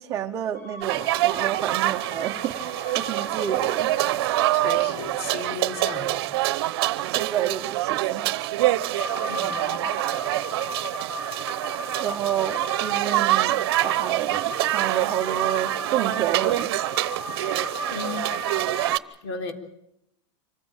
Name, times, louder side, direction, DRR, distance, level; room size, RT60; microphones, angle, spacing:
voice 1, 0.0-3.9 7.1-8.4 12.0-16.7, right 10 dB, 20° right, 1 dB, 0.9 m, -30 dB
sound 1, 0.5-4.8 8.9-19.0, left 2 dB, 15° left, 1.8 m, -37 dB
sound 2, 0.8-19.0, right 16 dB, 55° right, 1.0 m, -26 dB
voice 2, 4.5-6.4 9.3-9.8 17.9-18.3 19.2-19.5, left 4 dB, 60° left, 6 dB, 3.6 m, -35 dB
25.5 x 15.0 x 9.0 m, 0.79 s
supercardioid pair, 180°, 15 cm